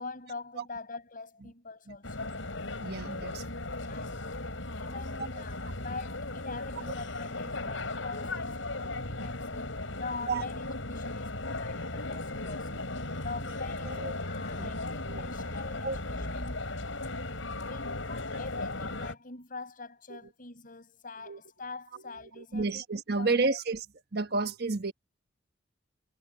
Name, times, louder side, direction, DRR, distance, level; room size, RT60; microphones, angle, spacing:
voice 1, 0.0-2.3 3.8-4.4 4.7-12.7 13.2-16.6 17.6-22.8 23.2-23.6, left 3 dB, 45° left, 6.7 m, -44 dB
sound 1, 2.0-19.1, left 2 dB, 80° left, 5.9 m, -36 dB
voice 2, 2.8-3.4 5.2-5.4 10.3-10.4 13.8-14.1 14.6-14.7 15.1-15.3 15.8-16.0 20.1-20.2 21.2-21.4 21.9-22.0 22.4-23.8 24.1-24.9, right 3 dB, 55° right, 1.3 m, -31 dB
head